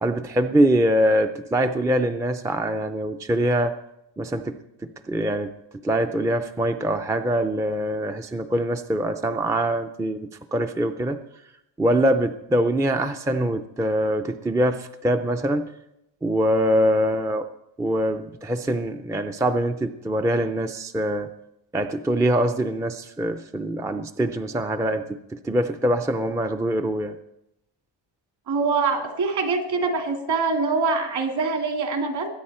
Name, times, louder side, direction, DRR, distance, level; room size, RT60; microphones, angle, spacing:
voice 1, 0.0-3.7 4.2-4.6 5.1-5.5 5.8-11.2 11.8-15.7 16.2-17.4 17.8-21.3 21.7-27.2, right 1 dB, 5° right, 7 dB, 0.4 m, -23 dB
voice 2, 28.5-32.3, right 4 dB, 55° right, 3 dB, 2.9 m, -24 dB
21.0 x 9.5 x 4.3 m, 0.84 s
cardioid pair, 160°, 46 cm